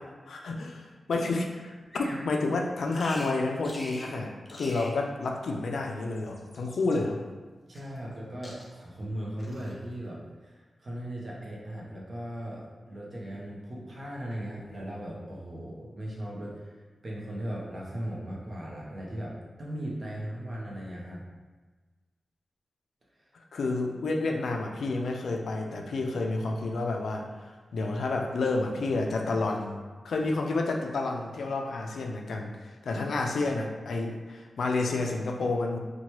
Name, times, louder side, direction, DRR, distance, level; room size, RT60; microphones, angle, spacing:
voice 1, 0.3-7.2 23.5-27.3 27.7-35.8, left 3 dB, 90° left, 2 dB, 0.3 m, -30 dB
Bird vocalization bird call bird song, 1.9-2.3 2.9-3.4 3.6-4.1 4.4-5.0 6.0-7.0 7.7-8.2 8.4-8.9 9.4-9.8, left 1 dB, 20° left, 0.4 m, -45 dB
voice 2, 7.7-16.7 17.0-21.2 23.2-23.3, right 1 dB, 40° right, -4 dB, 0.6 m, -38 dB
2.9 x 2.2 x 3.0 m, 1.3 s
wide cardioid pair, 150°, 0 cm